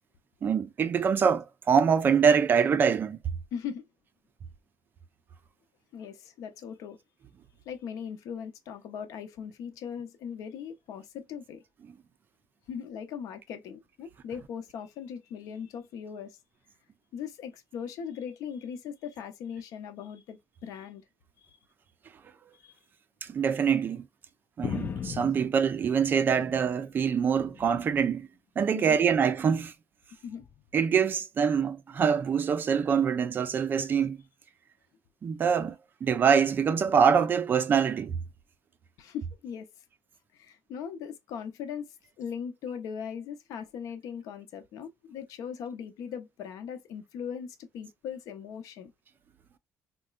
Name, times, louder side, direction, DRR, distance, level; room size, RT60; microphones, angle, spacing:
voice 1, 0.4-3.2 23.2-24.1 24.6-28.3 28.6-29.7 30.7-34.2 35.2-38.2, right 7 dB, 35° right, 0.4 m, -24 dB
voice 2, 3.5-3.8 5.9-7.0 7.7-11.6 12.7-16.4 17.1-21.0 21.4-21.6 22.5-22.7 28.7-29.0 30.2-30.4 39.0-39.7 40.3-48.9, left 7 dB, 75° left, 0.7 m, -39 dB
sound 1, 24.6-26.9 27.2-28.2 29.0-29.4 30.4-30.6, left 7 dB, 35° left, 0.3 m, -39 dB
3.8 x 2.1 x 2.3 m
cardioid pair, 130°, 6 cm